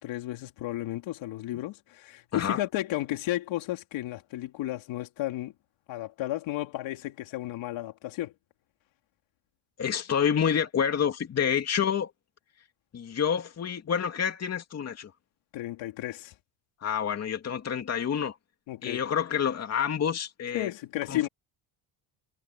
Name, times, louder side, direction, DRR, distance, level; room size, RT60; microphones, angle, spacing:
voice 1, 0.0-5.5 5.9-8.3 15.5-16.4 18.7-19.0 20.5-21.3, left 15 dB, 70° left, 3.5 m, -33 dB
voice 2, 2.3-2.6 9.8-12.1 12.9-15.1 16.8-18.4 18.8-20.7 21.1-21.3, left 8 dB, 35° left, 2.8 m, -28 dB
cardioid pair, 145°, 47 cm